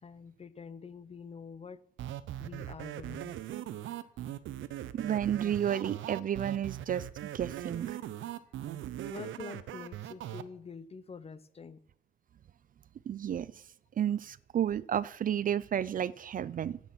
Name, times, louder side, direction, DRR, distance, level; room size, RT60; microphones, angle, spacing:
voice 1, 0.0-1.8 2.4-3.4 9.1-11.8, left 5 dB, 30° left, 0.7 m, -46 dB
sound 1, 2.0-10.4, right 12 dB, 80° right, 0.8 m, -40 dB
voice 2, 4.9-8.0 13.1-13.6 14.0-16.8, right 10 dB, 45° right, 0.4 m, -32 dB
11.5 x 8.6 x 6.0 m
cardioid pair, 90°, 20 cm